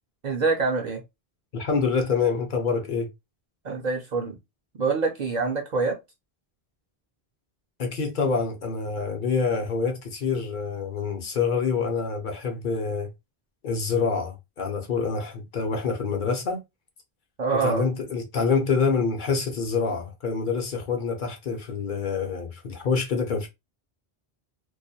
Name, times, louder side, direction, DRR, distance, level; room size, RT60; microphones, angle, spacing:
voice 1, 0.2-1.0 3.6-4.4 4.8-6.0 17.4-17.8, right 4 dB, 55° right, 0.5 m, -25 dB
voice 2, 1.5-3.1 7.8-13.1 13.6-16.6 17.6-23.5, left 5 dB, 55° left, 0.7 m, -26 dB
2.3 x 2.1 x 2.6 m
omnidirectional pair, 1.0 m